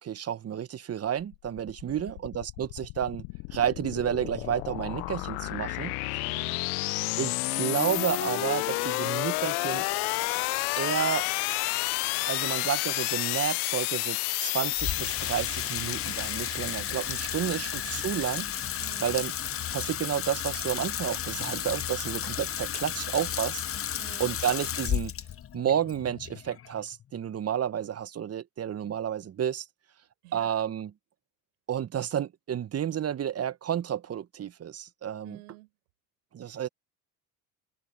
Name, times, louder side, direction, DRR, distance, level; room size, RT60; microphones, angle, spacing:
voice 1, 0.0-3.2 3.5-6.3 7.2-9.9 10.8-11.3 12.3-18.7 19.0-19.3 19.7-23.6 24.2-25.1 25.5-29.7 30.3-30.9 31.7-35.4 36.3-36.7, right 9 dB, 35° right, 1.0 m, -31 dB
sound 1, 1.2-19.9, left 28 dB, 75° left, 0.6 m, -31 dB
voice 2, 1.9-2.2 6.3-6.7 17.3-17.7 18.8-19.2 24.0-24.4 30.2-30.5 35.2-35.7 36.4-36.6, right 22 dB, 80° right, 4.8 m, -50 dB
Water tap faucet / Sink (filling or washing), 14.8-27.2, left 10 dB, 30° left, 0.8 m, -33 dB
hypercardioid pair, 70°, 44 cm